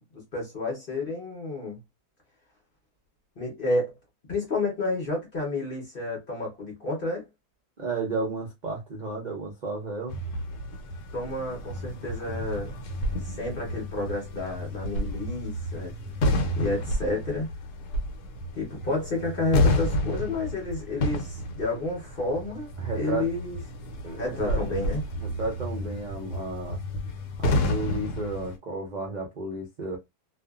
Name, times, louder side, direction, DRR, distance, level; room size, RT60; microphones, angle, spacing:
voice 1, 0.1-1.8 3.4-3.9 4.3-7.2 11.1-12.7 13.2-15.9 16.6-17.5 18.5-22.7 22.9-23.6 24.2-25.0, left 2 dB, 40° left, 0.8 m, -30 dB
voice 2, 7.8-10.2 22.8-23.3 24.0-24.6 25.2-26.8 27.4-30.0, right 3 dB, 65° right, 0.4 m, -33 dB
sound 1, 10.1-28.6, left 1 dB, 70° left, 1.1 m, -30 dB
2.6 x 2.4 x 2.3 m
omnidirectional pair, 1.8 m